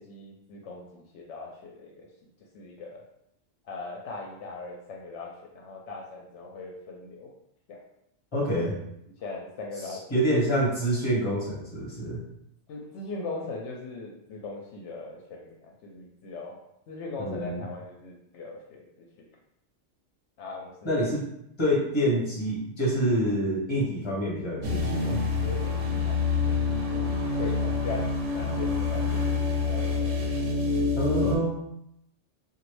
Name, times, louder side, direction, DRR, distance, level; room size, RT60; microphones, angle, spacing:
voice 1, 0.0-2.1 2.5-3.0 3.7-7.3 7.7-7.8 9.2-10.2 12.7-16.6 16.9-19.1 20.4-21.0 25.4-26.2 26.5-27.1 27.3-29.4 29.7-30.2 30.8-30.9, left 3 dB, 75° left, -1 dB, 0.9 m, -40 dB
voice 2, 8.3-8.7 10.1-12.2 17.2-17.6 20.8-21.2 21.6-25.2 31.0-31.5, equal, 25° left, -6 dB, 1.1 m, -26 dB
sound 1, 24.6-31.4, left 4 dB, 90° right, 1.0 m, -27 dB
3.0 x 2.4 x 3.1 m, 0.78 s
omnidirectional pair, 1.2 m